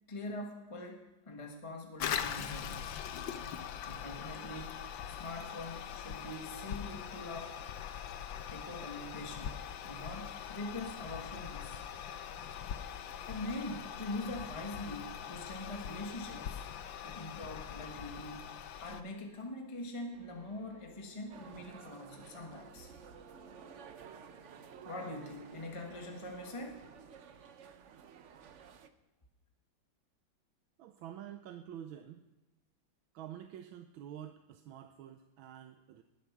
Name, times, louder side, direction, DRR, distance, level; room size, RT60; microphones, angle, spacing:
voice 1, 0.1-3.0 3.8-7.6 8.5-11.8 13.3-16.6 17.0-18.5 18.8-22.9 24.8-26.8, left 2 dB, 20° left, 2 dB, 1.3 m, -43 dB
Toilet flush, 2.0-19.0, left 9 dB, 75° left, 1.5 m, -42 dB
sound 1, 20.1-28.0, right 3 dB, 35° right, 1.0 m, -62 dB
sound 2, 21.3-28.9, right 7 dB, 60° right, 0.7 m, -53 dB
voice 2, 30.8-32.2 33.1-36.0, right 10 dB, 85° right, 7 dB, 1.5 m, -48 dB
19.5 x 8.4 x 5.9 m, 1.0 s
omnidirectional pair, 2.1 m